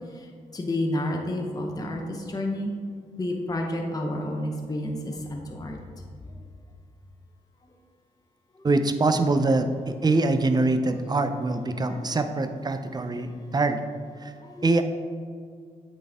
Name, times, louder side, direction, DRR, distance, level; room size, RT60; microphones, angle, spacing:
voice 1, 0.5-2.7 3.2-5.8 8.6-8.7 11.9-12.2 14.4-14.8, left 1 dB, 25° left, 1 dB, 0.9 m, -30 dB
voice 2, 8.6-13.8 14.2-14.3 14.6-14.8, right 2 dB, 30° right, 8 dB, 0.6 m, -24 dB
8.6 x 4.2 x 3.6 m, 2.1 s
cardioid pair, 70°, 15 cm